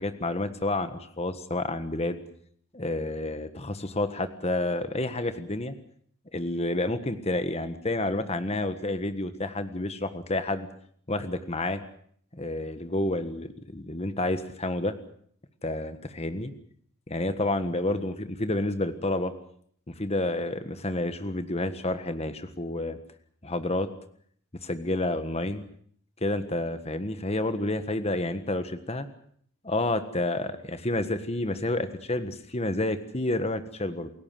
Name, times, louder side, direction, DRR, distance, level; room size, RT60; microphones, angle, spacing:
voice 1, 0.0-2.2 2.7-5.7 6.3-10.7 11.1-11.8 12.3-15.0 15.6-16.5 17.1-19.3 19.9-23.0 23.4-23.9 24.6-25.6 26.2-29.1 29.6-34.1, left 2 dB, 30° left, 10 dB, 1.5 m, -29 dB
28.5 x 17.0 x 7.6 m, 0.63 s
head